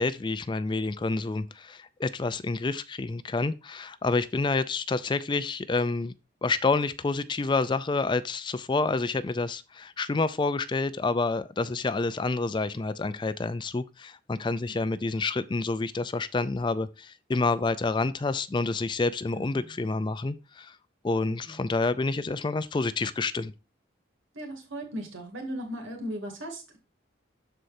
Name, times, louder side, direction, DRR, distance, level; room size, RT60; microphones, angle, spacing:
voice 1, 0.0-6.1 6.4-20.8 21.0-23.5, left 3 dB, 25° left, 0.3 m, -28 dB
voice 2, 14.7-15.1 19.3-19.7 21.2-21.7 24.3-26.8, right 1 dB, 85° right, 2.5 m, -38 dB
13.0 x 4.5 x 2.7 m
head